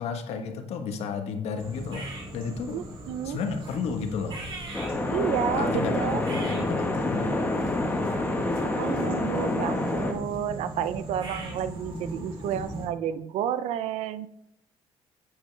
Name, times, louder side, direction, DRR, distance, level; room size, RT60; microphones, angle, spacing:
voice 1, 0.0-2.0 2.3-2.8 3.2-4.4 5.5-7.4, left 5 dB, 75° left, 6 dB, 1.2 m, -32 dB
sound 1, 1.6-12.9, right 1 dB, 50° right, 3.1 m, -39 dB
voice 2, 2.7-3.4 5.1-6.2 8.6-14.3, right 9 dB, 80° right, 14 dB, 0.5 m, -31 dB
sound 2, 4.7-10.1, left 2 dB, 15° left, 1.3 m, -27 dB
9.3 x 8.1 x 3.3 m, 0.83 s
cardioid pair, 115°, 11 cm